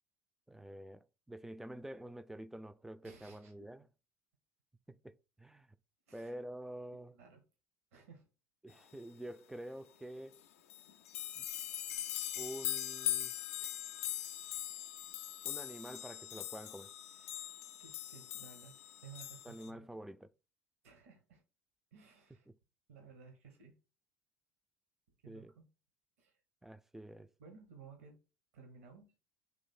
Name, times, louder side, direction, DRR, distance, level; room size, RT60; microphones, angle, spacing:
voice 1, 0.5-3.9 4.9-5.7 6.1-7.2 8.6-10.4 11.4-11.5 12.4-13.3 15.4-16.9 19.4-20.3 25.3-25.5 26.6-27.3, right 1 dB, 5° right, 0.3 m, -48 dB
voice 2, 3.0-3.5 6.1-6.3 7.1-7.4 7.9-8.3 17.1-18.7 19.0-19.9 20.8-21.4 21.9-22.5 22.9-23.7 25.2-25.6 26.2-26.4 27.4-28.2 28.5-29.1, right 6 dB, 75° right, 0.9 m, -57 dB
sound 1, 10.3-10.4 10.7-19.7, left 12 dB, 70° left, 0.4 m, -41 dB
3.2 x 3.1 x 4.2 m
figure-of-eight pair, 65°, 8 cm